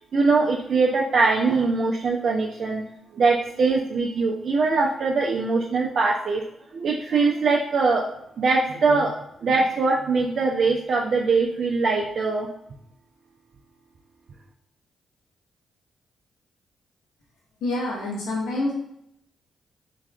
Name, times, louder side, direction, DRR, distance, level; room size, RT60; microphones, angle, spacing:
voice 1, 0.1-2.8 3.1-6.4 6.7-8.0 8.4-9.1 9.4-12.5, right 4 dB, 65° right, -3 dB, 0.4 m, -22 dB
voice 2, 17.6-18.7, left 2 dB, 75° left, -4 dB, 0.6 m, -27 dB
3.3 x 2.3 x 2.3 m, 0.77 s
hypercardioid pair, 40°, 0 cm